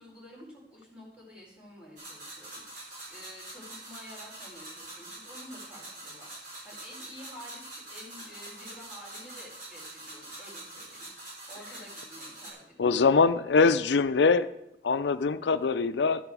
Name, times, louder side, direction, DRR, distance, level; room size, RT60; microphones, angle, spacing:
voice 1, 0.0-6.3 6.6-11.1 11.5-13.1, equal, 5° right, -6 dB, 5.1 m, -50 dB
sound 1, 2.0-12.5, right 2 dB, 50° right, 6.2 m, -45 dB
voice 2, 12.8-14.5 14.8-16.2, left 4 dB, 85° left, 13 dB, 0.5 m, -23 dB
13.5 x 10.0 x 4.8 m, 0.84 s
head